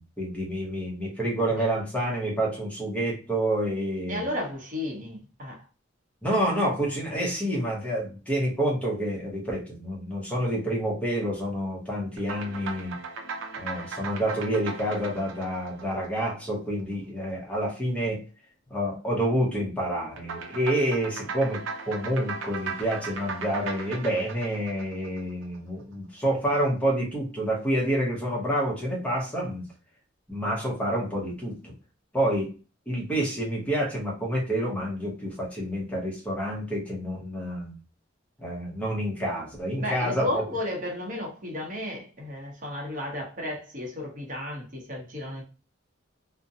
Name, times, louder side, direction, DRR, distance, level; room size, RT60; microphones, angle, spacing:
voice 1, 0.0-4.3 6.2-12.9 13.6-18.2 18.7-29.6 30.3-31.7 32.1-32.5 32.9-37.8 38.4-40.4, right 1 dB, 5° left, 0.8 m, -28 dB
voice 2, 4.1-5.6 39.8-45.4, left 1 dB, 45° right, 0.8 m, -33 dB
sound 1, 12.2-16.8 20.2-25.6, right 4 dB, 80° right, 0.5 m, -38 dB
2.5 x 2.1 x 2.6 m
head